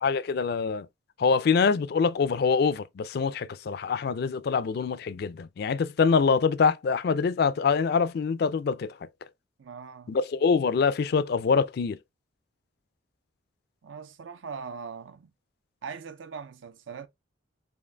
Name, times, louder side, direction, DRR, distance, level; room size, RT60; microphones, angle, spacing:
voice 1, 0.0-0.9 1.2-8.9 10.1-12.0, left 5 dB, 55° left, 0.3 m, -25 dB
voice 2, 9.6-10.2 13.8-15.3 15.8-17.1, right 5 dB, 80° right, 0.5 m, -41 dB
4.9 x 2.5 x 3.3 m
head